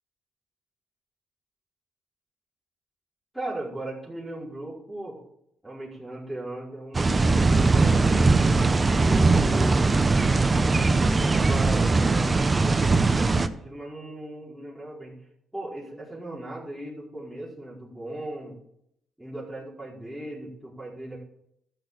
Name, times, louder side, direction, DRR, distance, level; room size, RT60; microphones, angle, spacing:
voice 1, 3.3-5.2 5.6-8.5 8.9-9.9 11.2-12.3 12.9-15.2 15.5-18.6 19.2-21.2, right 1 dB, ahead, -7 dB, 4.9 m, -37 dB
sound 1, 6.9-13.5, right 3 dB, 25° right, 0.9 m, -20 dB
13.5 x 6.6 x 6.9 m, 0.75 s
cardioid pair, 90°, 0 cm